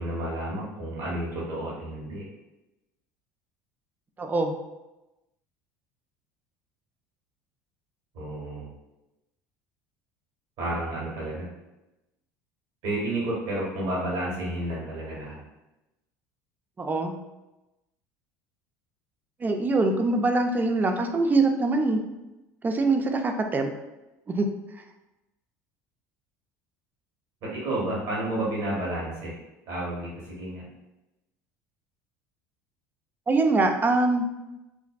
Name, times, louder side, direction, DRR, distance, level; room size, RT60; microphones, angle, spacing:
voice 1, 0.0-2.2 8.1-8.7 10.6-11.5 12.8-15.4 27.4-29.4 29.7-30.6, right 1 dB, 65° right, -5 dB, 1.3 m, -31 dB
voice 2, 4.2-4.5 16.8-17.1 19.4-22.0 22.6-23.7 24.3-24.5 33.3-34.3, right 3 dB, 20° right, 5 dB, 0.3 m, -23 dB
2.6 x 2.1 x 2.3 m, 0.98 s
supercardioid pair, 95°, 8 cm